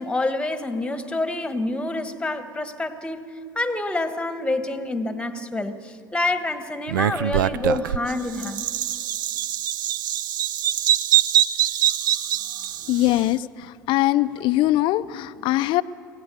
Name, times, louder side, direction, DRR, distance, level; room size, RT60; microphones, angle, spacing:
voice 1, 0.0-8.7 12.5-12.7 12.9-13.0, left 2 dB, 10° left, 11 dB, 1.5 m, -27 dB
Bird vocalization bird call bird song, 6.9-13.2, right 11 dB, 70° right, 0.5 m, -23 dB
voice 2, 12.9-13.4 13.9-15.8, left 16 dB, 50° left, 15 dB, 0.6 m, -21 dB
24.5 x 17.0 x 6.9 m, 2.5 s
hypercardioid pair, 80°, 11 cm